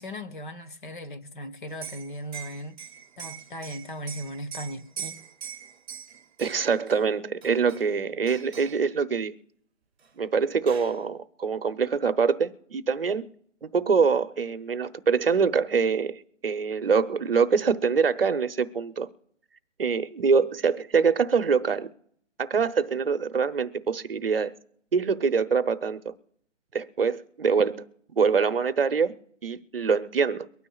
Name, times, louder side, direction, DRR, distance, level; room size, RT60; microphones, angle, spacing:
voice 1, 0.0-2.8 3.2-5.3, equal, 40° left, 0.9 m, -38 dB
Liquid, 1.7-7.0 7.4-8.0 8.3-8.8 10.0-10.1 10.4-11.0, right 8 dB, 10° right, 0.9 m, -42 dB
voice 2, 6.4-9.3 10.2-13.3 13.6-19.1 19.8-21.9 22.4-24.5 24.9-26.1 26.7-27.8 28.2-29.1 29.4-30.5, right 5 dB, 50° right, 0.8 m, -24 dB
23.5 x 9.6 x 2.3 m
hypercardioid pair, 170°, 37 cm